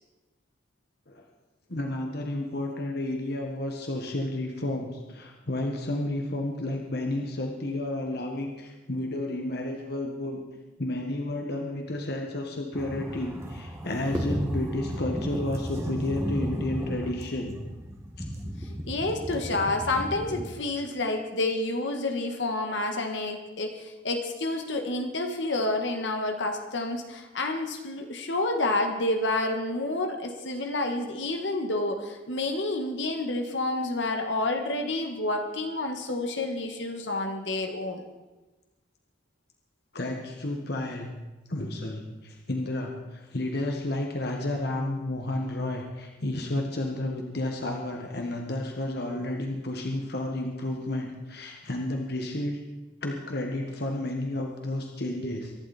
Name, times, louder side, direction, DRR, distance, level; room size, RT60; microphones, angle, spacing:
voice 1, 1.7-10.4 10.8-17.6 39.9-41.1 41.5-52.6 53.0-55.5, left 1 dB, 60° left, 2 dB, 1.6 m, -31 dB
sound 1, 12.7-20.5, equal, 15° right, 1.8 m, -34 dB
voice 2, 18.9-38.0 55.2-55.3, left 2 dB, 75° left, 4 dB, 1.7 m, -29 dB
23.5 x 11.5 x 4.4 m, 1.1 s
head